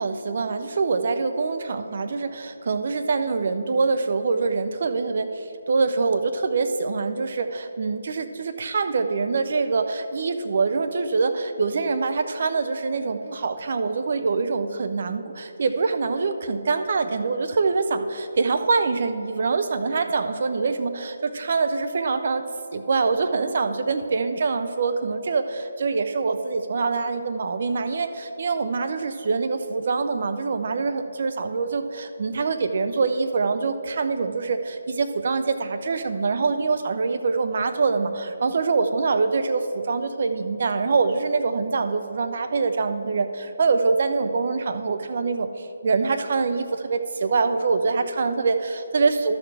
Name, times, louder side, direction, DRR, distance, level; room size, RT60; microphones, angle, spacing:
voice 1, 0.0-22.4 22.7-45.5 45.8-48.6 48.9-49.4, right 4 dB, 50° right, 8 dB, 0.6 m, -24 dB
12.0 x 6.3 x 4.8 m, 2.9 s
figure-of-eight pair, 145°, 0 cm